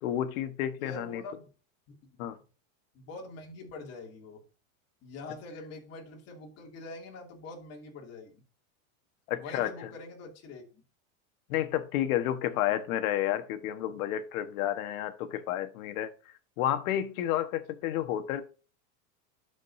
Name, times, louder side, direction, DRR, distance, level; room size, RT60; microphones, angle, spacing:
voice 1, 0.0-1.2 2.2-2.4 9.3-9.9 11.5-16.1 16.6-18.4, left 12 dB, 70° left, 1.4 m, -31 dB
voice 2, 0.8-1.5 2.9-4.4 5.0-8.4 9.4-10.8 12.5-12.8, left 3 dB, 35° left, 2.6 m, -44 dB
12.0 x 5.2 x 2.7 m
supercardioid pair, 145°, 43 cm